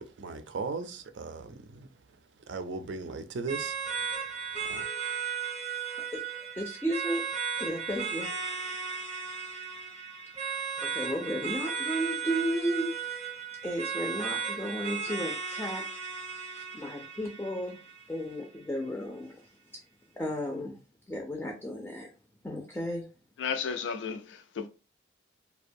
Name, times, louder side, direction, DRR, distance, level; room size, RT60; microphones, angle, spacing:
voice 1, 0.0-1.9 2.5-3.8 4.6-4.8, right 4 dB, 80° right, 0.4 m, -37 dB
sound 1, 3.5-18.4, right 6 dB, 35° right, 0.6 m, -35 dB
voice 2, 6.1-7.2 7.6-8.3 10.8-13.2 13.6-15.8 16.5-17.8 18.1-19.4 19.7-19.8 20.1-20.8 21.1-22.1 22.4-23.0, equal, 10° left, 0.4 m, -34 dB
voice 3, 23.4-24.7, left 6 dB, 90° left, 0.4 m, -33 dB
2.5 x 2.1 x 2.5 m
head